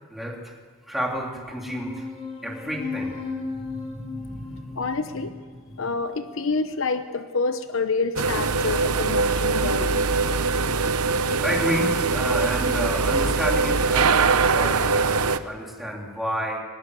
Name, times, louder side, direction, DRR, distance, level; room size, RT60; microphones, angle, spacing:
voice 1, 0.1-0.5 0.9-2.0 2.4-3.2 3.5-5.0 11.4-14.2 14.5-16.6, equal, ahead, -1 dB, 3.5 m, -30 dB
sound 1, 1.6-6.6, left 4 dB, 25° left, 3.7 m, -36 dB
voice 2, 4.7-5.4 5.8-10.4, left 4 dB, 60° left, 9 dB, 0.9 m, -28 dB
sound 2, 8.2-15.4, right 4 dB, 85° right, 1.0 m, -22 dB
22.0 x 20.0 x 8.3 m, 1.5 s
head